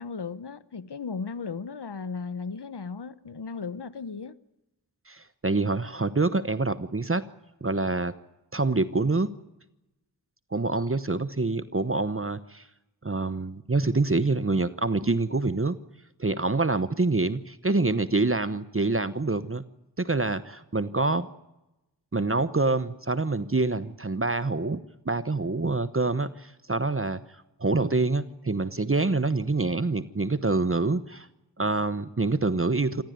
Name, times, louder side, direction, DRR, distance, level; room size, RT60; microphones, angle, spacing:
voice 1, 0.0-4.3, left 5 dB, 65° left, 15 dB, 1.1 m, -36 dB
voice 2, 5.1-7.2 7.6-8.1 8.5-9.3 10.5-12.6 13.0-15.8 16.2-19.6 20.0-21.3 22.1-24.8 25.1-27.2 27.6-31.3 31.6-33.0, right 3 dB, 30° right, 14 dB, 1.0 m, -26 dB
27.0 x 15.5 x 9.4 m, 0.95 s
wide cardioid pair, 55°, 43 cm